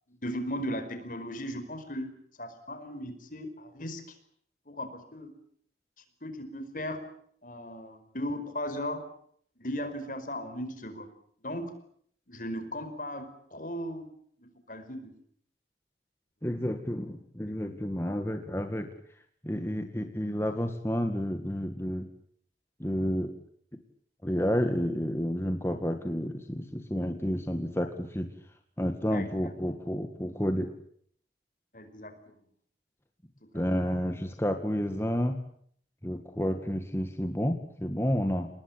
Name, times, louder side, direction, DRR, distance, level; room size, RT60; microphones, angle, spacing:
voice 1, 0.2-4.0 4.7-5.3 6.2-7.0 7.4-9.0 9.6-11.1 11.4-11.7 12.3-14.1 14.4-15.1 17.7-17.8 29.1-29.5 31.7-32.3 33.5-33.6, equal, 50° left, 9 dB, 5.0 m, -37 dB
voice 2, 16.4-18.9 19.4-22.1 22.8-23.3 24.2-28.3 28.8-30.7 33.5-35.4 36.0-38.5, equal, 15° left, 6 dB, 2.0 m, -30 dB
29.0 x 20.5 x 8.9 m, 0.65 s
head